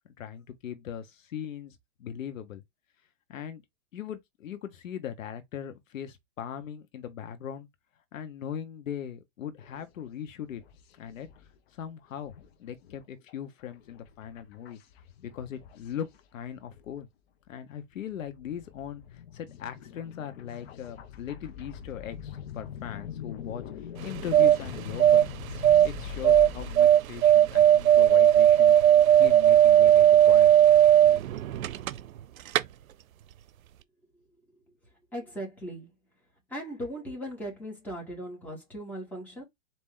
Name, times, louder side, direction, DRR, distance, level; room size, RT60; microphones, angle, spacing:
voice 1, 0.2-2.6 3.3-3.6 3.9-7.7 8.1-10.6 11.0-11.3 11.7-12.3 12.6-14.8 15.2-17.1 17.5-23.6 24.0-25.2 25.8-28.8 29.2-30.6, left 9 dB, 70° left, 1.1 m, -39 dB
sound 1, 9.6-9.9 10.4-11.6 11.8-11.9 12.2-17.0 17.5-17.6 18.0-26.8, left 8 dB, 50° left, 0.9 m, -43 dB
sound 2, 24.0-32.2 32.5-32.6, right 11 dB, 85° right, 0.6 m, -18 dB
voice 2, 35.1-35.9 36.5-39.4, equal, 5° left, 1.9 m, -38 dB
4.4 x 2.9 x 3.7 m
hypercardioid pair, 150°, 40 cm